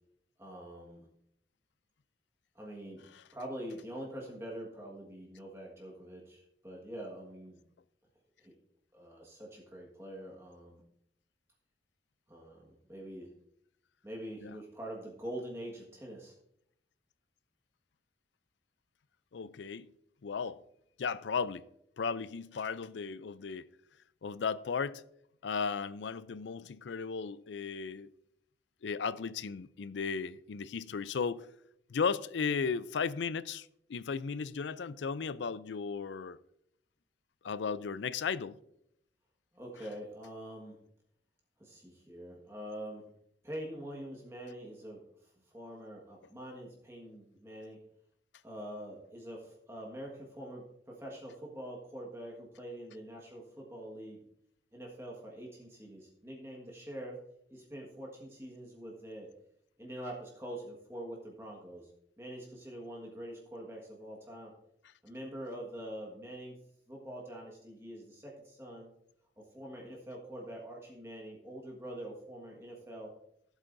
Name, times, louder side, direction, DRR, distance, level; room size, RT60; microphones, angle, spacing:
voice 1, 0.4-1.1 2.5-3.0 3.3-7.6 8.4-8.5 8.9-10.8 12.3-13.3 14.0-16.3 39.5-40.8 41.6-43.1 43.4-47.8 48.4-54.2 54.7-57.2 57.5-59.3 59.8-61.9 62.2-64.5 65.0-66.6 66.9-68.9 69.4-73.1, right 1 dB, 15° right, 1.5 m, -45 dB
voice 2, 19.3-19.9 20.2-20.6 21.0-21.6 22.0-23.7 24.2-25.0 25.4-28.1 28.8-31.5 31.9-36.4 37.4-38.6, left 5 dB, 85° left, 0.4 m, -35 dB
15.0 x 8.1 x 2.6 m
head